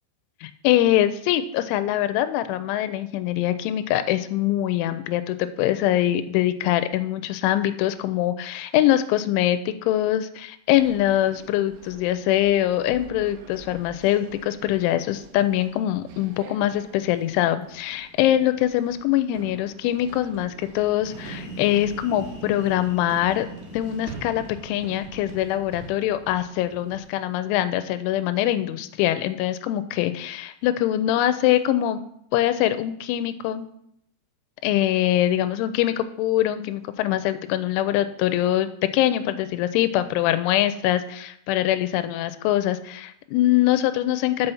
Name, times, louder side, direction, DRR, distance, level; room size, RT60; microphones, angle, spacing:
voice 1, 0.4-23.5 23.7-32.0 32.3-33.7 34.6-44.5, left 13 dB, 90° left, 11 dB, 3.0 m, -23 dB
sound 1, 10.8-27.2, right 6 dB, 80° right, 2.6 m, -45 dB
sound 2, 20.8-28.5, left 1 dB, 55° left, 1.2 m, -43 dB
6.9 x 5.6 x 6.9 m, 0.74 s
omnidirectional pair, 5.3 m